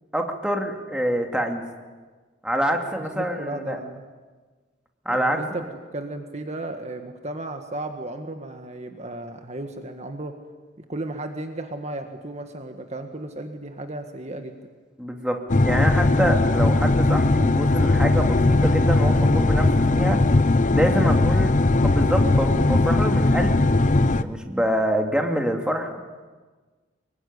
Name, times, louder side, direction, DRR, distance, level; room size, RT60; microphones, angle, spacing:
voice 1, 0.1-1.6 2.4-3.8 5.0-5.4 15.0-20.2 20.7-21.5 21.8-26.0, equal, 5° right, 3 dB, 2.6 m, -26 dB
voice 2, 3.1-4.0 5.1-5.6 5.9-10.4 10.9-14.6 21.0-21.3 23.2-23.4, right 2 dB, 35° right, 5 dB, 1.7 m, -34 dB
sound 1, 15.5-24.2, left 2 dB, 40° left, 0.7 m, -19 dB
26.0 x 22.5 x 9.9 m, 1.4 s
head